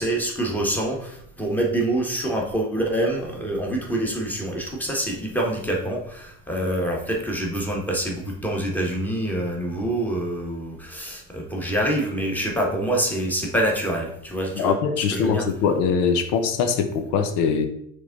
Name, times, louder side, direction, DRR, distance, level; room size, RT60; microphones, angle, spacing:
voice 1, 0.0-15.4, right 1 dB, 5° left, -1 dB, 1.5 m, -26 dB
voice 2, 14.6-17.7, left 6 dB, 85° left, 8 dB, 0.8 m, -22 dB
6.7 x 3.6 x 3.9 m, 0.70 s
supercardioid pair, 115°, 36 cm